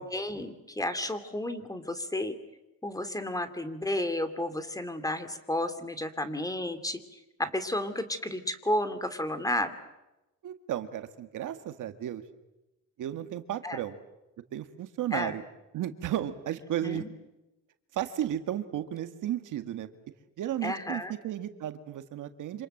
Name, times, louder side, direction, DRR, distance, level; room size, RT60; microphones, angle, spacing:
voice 1, 0.0-2.4 2.8-7.0 7.4-9.7 13.6-13.8 15.1-15.3 16.8-17.1 20.6-21.1, left 1 dB, 10° left, 10 dB, 2.7 m, -32 dB
voice 2, 10.4-12.2 13.0-14.0 14.5-15.4 15.7-17.1 17.9-19.9 20.4-22.7, right 11 dB, 75° right, 9 dB, 1.9 m, -34 dB
27.0 x 26.5 x 7.8 m, 0.98 s
cardioid pair, 110°, 31 cm